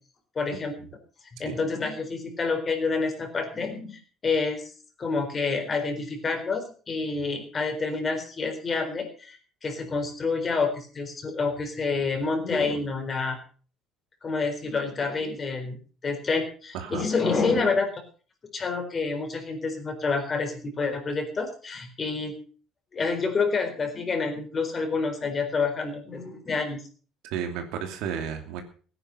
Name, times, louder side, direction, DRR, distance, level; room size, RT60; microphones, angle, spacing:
voice 1, 0.4-0.7 1.4-4.7 5.0-13.4 14.2-15.8 16.0-17.9 18.5-22.3 22.9-26.8, left 4 dB, 30° left, 5 dB, 4.1 m, -28 dB
voice 2, 16.7-17.1 27.2-28.6, right 8 dB, 85° right, 5 dB, 2.8 m, -33 dB
16.5 x 10.0 x 5.7 m, 0.41 s
cardioid pair, 125°, 0 cm